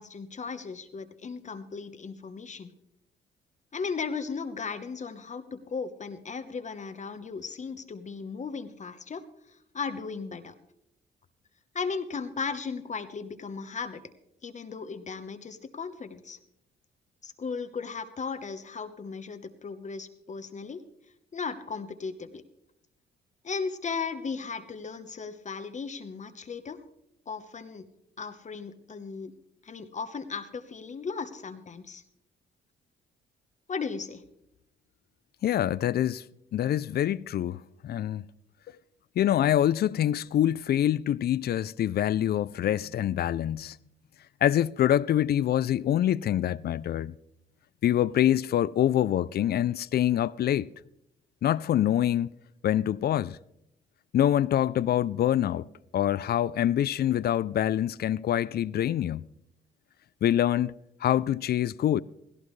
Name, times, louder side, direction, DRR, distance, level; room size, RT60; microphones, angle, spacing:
voice 1, 0.0-2.7 3.7-10.5 11.7-14.0 14.4-16.4 17.2-20.8 21.3-22.4 23.4-26.8 27.3-27.8 28.2-29.3 29.6-32.0 33.7-34.2, left 5 dB, 35° left, 1.0 m, -36 dB
voice 2, 35.4-36.2 36.5-38.2 39.2-43.8 44.4-47.1 47.8-50.7 51.4-52.3 52.6-53.4 54.1-55.7 55.9-59.3 60.2-62.0, left 11 dB, 55° left, 0.4 m, -25 dB
17.5 x 16.0 x 3.2 m
cardioid pair, 90°, 20 cm